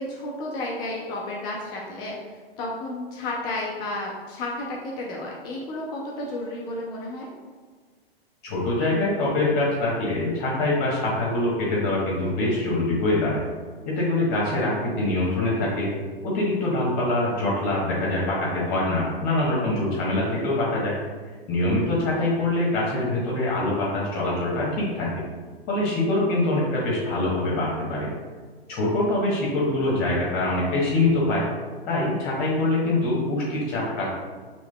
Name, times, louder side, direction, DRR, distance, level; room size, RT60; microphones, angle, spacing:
voice 1, 0.0-2.2 2.6-7.3, left 2 dB, 15° left, -3 dB, 0.3 m, -32 dB
voice 2, 8.4-13.4 13.9-15.9 16.2-20.9 21.5-25.2 25.7-28.1 28.7-31.4 31.9-34.1, left 2 dB, 30° left, -4 dB, 1.0 m, -24 dB
6.1 x 2.9 x 2.2 m, 1.5 s
figure-of-eight pair, 105°, 30 cm